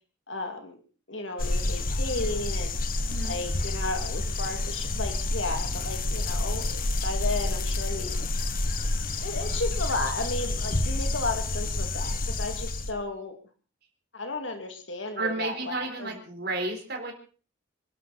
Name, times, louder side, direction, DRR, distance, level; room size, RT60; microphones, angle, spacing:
voice 1, 0.3-0.8 1.1-2.7 3.2-8.2 9.2-13.4 14.1-16.2, left 2 dB, 65° left, 5 dB, 2.5 m, -34 dB
sound 1, 1.4-12.9, left 2 dB, 45° left, 1.6 m, -29 dB
voice 2, 3.0-3.4 15.2-17.1, right 3 dB, 50° right, 2 dB, 4.2 m, -32 dB
26.0 x 12.0 x 4.2 m, 0.39 s
head